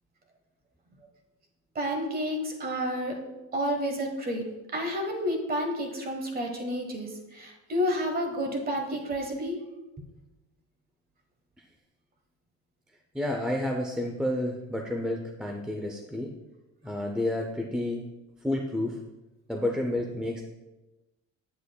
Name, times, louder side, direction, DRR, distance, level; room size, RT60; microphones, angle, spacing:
voice 1, 1.7-3.2 3.5-4.5 4.7-9.6, equal, 30° right, 3 dB, 1.2 m, -30 dB
voice 2, 13.1-16.3 16.8-18.1 18.4-19.0 19.5-20.4, left 1 dB, 5° right, 1 dB, 0.4 m, -30 dB
8.2 x 7.4 x 2.2 m, 1.0 s
cardioid pair, 145°, 30 cm